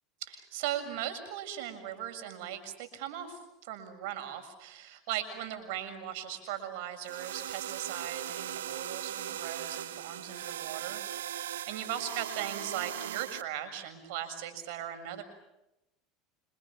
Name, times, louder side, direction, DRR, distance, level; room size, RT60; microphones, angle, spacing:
voice 1, 0.2-11.0 11.3-15.2, right 10 dB, 75° right, 8 dB, 6.8 m, -38 dB
sound 1, 7.0-13.4, right 11 dB, 90° right, 0.9 m, -39 dB
28.5 x 27.5 x 7.4 m, 0.90 s
hypercardioid pair, 95°, 0 cm